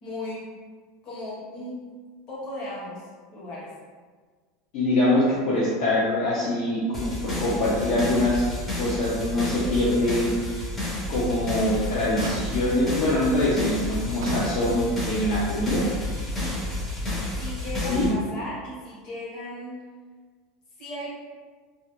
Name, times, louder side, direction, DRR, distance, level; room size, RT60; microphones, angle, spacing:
voice 1, 0.0-0.4 1.0-1.8 2.3-3.7 16.4-16.7 17.4-19.8 20.8-21.1, left 1 dB, 30° left, -7 dB, 0.9 m, -36 dB
voice 2, 4.7-8.5 8.7-10.4 11.1-15.9 17.9-18.1, left 1 dB, 50° left, -8 dB, 0.5 m, -24 dB
Motor vehicle (road), 5.2-5.9 6.2-6.3 6.8-7.8 8.2-8.3 8.9-9.0 11.2-11.6 12.2-12.9 13.6-13.8 14.2-15.0 16.1-16.2, right 3 dB, 85° right, 0.3 m, -38 dB
sound 1, 6.9-18.1, left 2 dB, 10° left, 0.6 m, -31 dB
2.4 x 2.1 x 2.8 m, 1.5 s
supercardioid pair, 170°, 3 cm